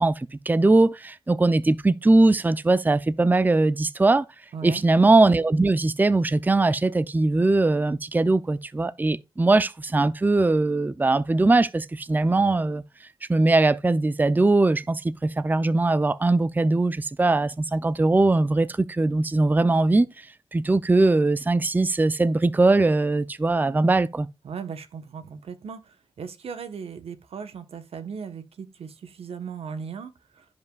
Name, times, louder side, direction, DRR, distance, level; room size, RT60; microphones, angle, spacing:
voice 1, 0.0-4.2 4.6-12.8 13.3-20.1 20.5-24.3, right 2 dB, 20° right, 0.5 m, -21 dB
voice 2, 4.5-4.8 24.4-30.4, right 6 dB, 85° right, 1.1 m, -37 dB
16.0 x 5.3 x 2.3 m
cardioid pair, 75°, 10 cm